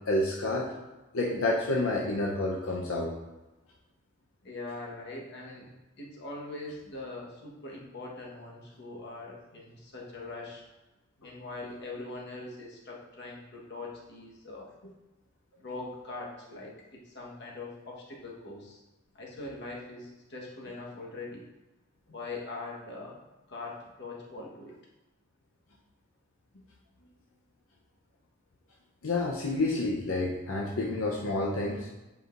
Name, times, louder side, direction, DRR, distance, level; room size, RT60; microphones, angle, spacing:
voice 1, 0.1-0.7 1.1-3.1 29.0-31.9, left 2 dB, 80° left, -2 dB, 0.7 m, -29 dB
voice 2, 4.4-5.7 6.0-10.6 11.2-14.7 15.6-18.8 19.1-21.5 22.1-23.1 23.5-24.7, left 2 dB, 55° left, -2 dB, 1.2 m, -42 dB
7.9 x 4.9 x 2.5 m, 1.1 s
head